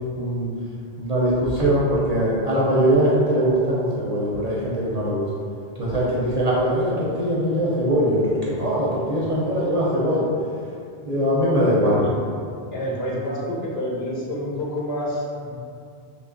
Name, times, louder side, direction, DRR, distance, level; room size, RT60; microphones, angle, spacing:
voice 1, 0.2-0.5 1.0-5.3 5.8-10.3 11.0-12.0, equal, 50° right, -7 dB, 0.5 m, -21 dB
voice 2, 12.7-15.5, equal, 75° left, -3 dB, 0.9 m, -28 dB
3.0 x 2.3 x 3.7 m, 2.3 s
omnidirectional pair, 1.1 m